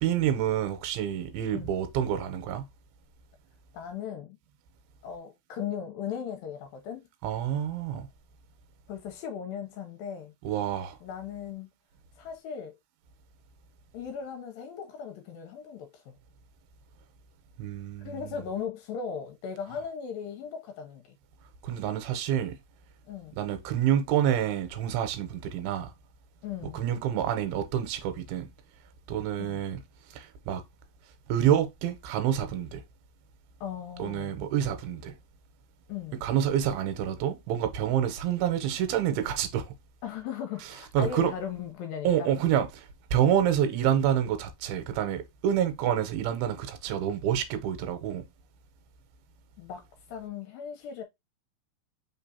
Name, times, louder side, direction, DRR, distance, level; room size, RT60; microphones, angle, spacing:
voice 1, 0.0-2.6 7.2-8.1 10.4-11.0 17.6-18.4 21.6-22.6 23.3-25.9 26.7-28.5 29.1-29.8 30.1-30.6 31.3-32.8 34.0-35.1 36.2-39.7 40.9-41.3 42.0-48.3, right 10 dB, 85° right, 2.6 m, -28 dB
voice 2, 3.7-4.4 5.0-7.1 8.9-10.3 11.0-11.7 12.2-12.8 13.9-16.1 18.1-21.0 23.1-23.4 26.4-26.8 29.4-29.6 33.6-34.3 35.9-36.2 40.0-42.3 49.6-51.0, left 7 dB, 80° left, 2.3 m, -37 dB
5.2 x 3.6 x 2.7 m
omnidirectional pair, 4.4 m